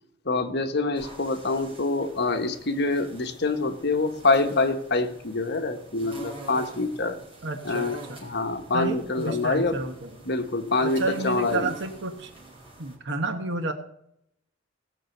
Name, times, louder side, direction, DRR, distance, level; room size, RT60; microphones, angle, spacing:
voice 1, 0.2-7.2 7.6-9.8 10.2-11.7, left 3 dB, 60° left, 7 dB, 1.3 m, -26 dB
sound 1, 0.9-13.0, right 3 dB, 30° right, 4.1 m, -46 dB
voice 2, 7.4-8.2 8.7-10.1 10.8-12.3 12.8-13.7, right 2 dB, 65° right, 6 dB, 1.2 m, -31 dB
17.5 x 6.1 x 7.9 m, 0.76 s
head